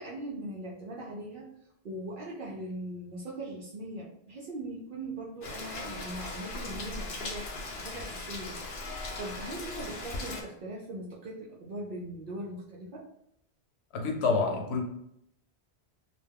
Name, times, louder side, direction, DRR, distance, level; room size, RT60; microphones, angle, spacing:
voice 1, 0.0-1.5 1.8-13.1, right 1 dB, 60° right, -5 dB, 0.7 m, -40 dB
Rain, 5.4-10.4, left 2 dB, 60° left, 0.7 m, -38 dB
voice 2, 13.9-14.8, left 4 dB, 85° left, 2 dB, 0.9 m, -27 dB
2.2 x 2.2 x 3.3 m, 0.74 s
omnidirectional pair, 1.1 m